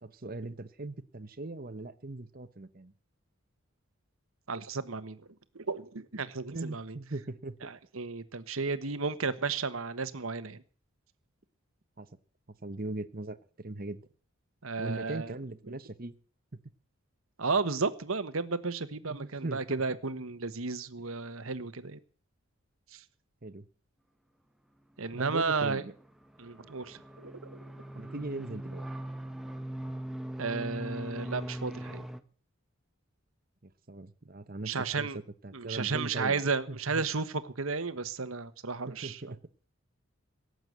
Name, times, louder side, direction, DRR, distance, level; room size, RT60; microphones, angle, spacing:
voice 1, 0.0-2.9 6.5-7.7 12.0-12.1 12.6-14.1 14.8-16.1 16.5-16.6 19.1-19.8 23.4-23.6 25.2-25.9 28.0-28.8 33.6-35.1 35.4-36.4 36.7-37.1 38.9-39.4, right 2 dB, 45° right, 13 dB, 1.0 m, -39 dB
voice 2, 4.5-5.2 5.5-7.0 7.6-10.6 14.6-15.3 17.4-22.0 22.9-23.0 25.0-25.8 26.4-27.6 30.4-32.1 34.6-35.2 35.5-39.4, right 4 dB, 80° right, 12 dB, 1.2 m, -33 dB
sound 1, 25.2-32.2, right 1 dB, ahead, 0.9 m, -41 dB
17.5 x 7.9 x 7.9 m, 0.43 s
head